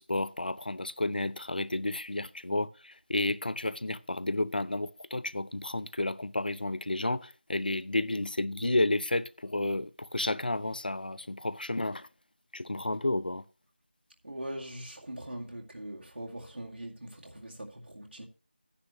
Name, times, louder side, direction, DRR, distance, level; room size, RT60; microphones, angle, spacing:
voice 1, 0.0-12.1 12.5-13.4, left 2 dB, 55° left, 0.5 m, -31 dB
voice 2, 14.2-18.3, right 1 dB, 75° right, 2.1 m, -41 dB
13.0 x 9.9 x 3.0 m
figure-of-eight pair, 180°, 6 cm